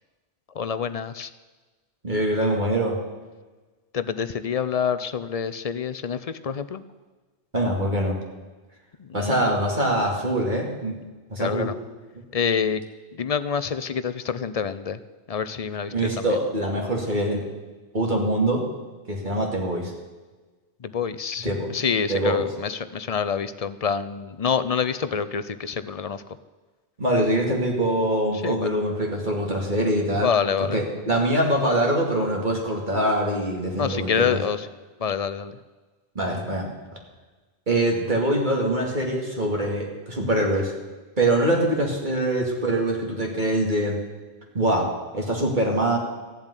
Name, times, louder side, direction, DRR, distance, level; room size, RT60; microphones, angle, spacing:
voice 1, 0.6-1.3 3.9-6.8 9.0-9.5 11.4-11.8 12.3-12.8 13.1-15.0 15.3-16.4 20.8-26.2 28.4-28.8 30.2-31.1 33.8-34.7 35.0-35.6, left 6 dB, 40° left, 13 dB, 0.6 m, -27 dB
voice 2, 2.0-3.0 7.5-8.2 9.1-10.9 11.3-11.7 15.9-17.4 17.9-18.6 19.1-19.9 21.4-21.8 22.1-22.5 27.0-30.3 30.7-34.4 36.1-36.7 37.7-40.7 41.2-44.0 44.5-46.0, right 1 dB, 45° right, -1 dB, 2.6 m, -24 dB
14.5 x 7.3 x 9.9 m, 1.3 s
omnidirectional pair, 1.2 m